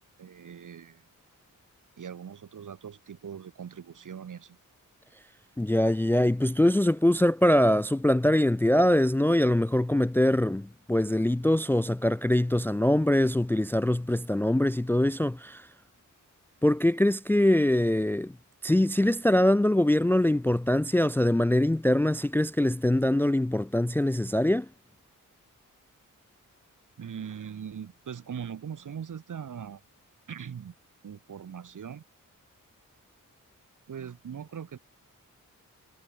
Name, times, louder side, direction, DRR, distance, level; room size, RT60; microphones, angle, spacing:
voice 1, 0.2-1.0 2.0-4.6 27.0-29.8 30.3-30.7 31.0-32.0 33.9-34.8, right 8 dB, 70° right, 2.2 m, -40 dB
voice 2, 5.6-15.7 16.6-18.4 18.6-24.7, left 1 dB, 5° left, 0.4 m, -23 dB
wide cardioid pair, 95°, 32 cm